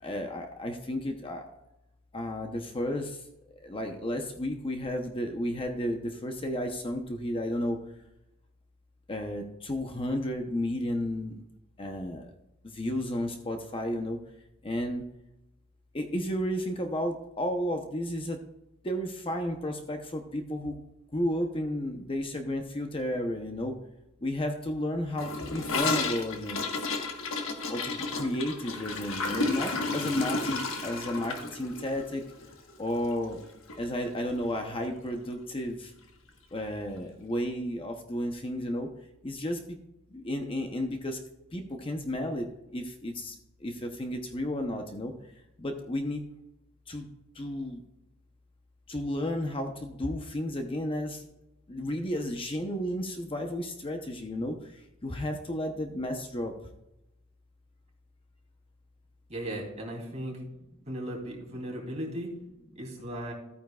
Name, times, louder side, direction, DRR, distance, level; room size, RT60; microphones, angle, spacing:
voice 1, 0.0-1.4 2.1-3.2 3.6-7.8 9.1-11.3 11.8-12.3 12.6-14.2 14.6-15.0 15.9-18.4 18.8-20.8 21.1-23.8 24.2-26.6 27.7-32.2 32.8-33.4 33.8-35.9 36.5-38.9 39.2-39.8 40.1-41.2 41.5-43.4 43.6-45.1 45.6-46.2 46.9-47.1 47.3-47.8 48.9-51.2 51.7-56.5, left 1 dB, 25° left, 4 dB, 0.8 m, -32 dB
Gurgling / Toilet flush, 25.2-33.4 33.7-33.8 34.1-34.6 34.8-34.9 35.2-35.3 36.3-36.4, left 3 dB, 75° left, 1.4 m, -32 dB
voice 2, 59.3-60.4 60.9-62.3 62.7-63.3, right 1 dB, 35° right, -1 dB, 2.8 m, -36 dB
13.5 x 9.0 x 2.4 m, 0.90 s
head